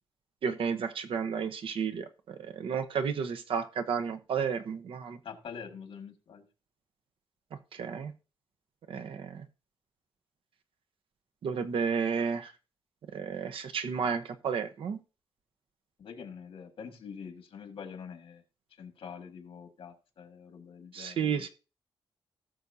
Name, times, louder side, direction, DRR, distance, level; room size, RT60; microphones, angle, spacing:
voice 1, 0.4-5.2 7.7-8.1 8.9-9.5 11.4-12.5 13.1-15.0 20.9-21.5, right 6 dB, 75° right, 8 dB, 1.0 m, -32 dB
voice 2, 5.2-6.5 16.0-18.4 18.8-21.5, left 6 dB, 70° left, 6 dB, 1.8 m, -45 dB
17.5 x 6.3 x 2.8 m, 0.34 s
wide cardioid pair, 175°, 9 cm